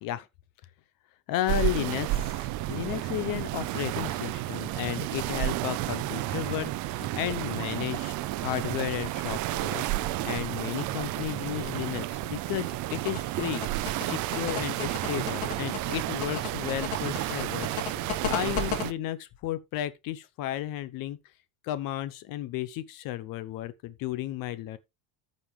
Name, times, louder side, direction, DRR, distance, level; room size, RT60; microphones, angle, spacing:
voice 1, 1.3-9.8 10.2-17.8 18.3-21.2 21.6-24.8, left 13 dB, 50° left, 0.8 m, -33 dB
sound 1, 1.5-18.9, right 15 dB, 45° right, 0.5 m, -31 dB
sound 2, 12.9-18.8, left 8 dB, 70° left, 2.6 m, -33 dB
14.0 x 5.3 x 3.3 m
cardioid pair, 175°, 43 cm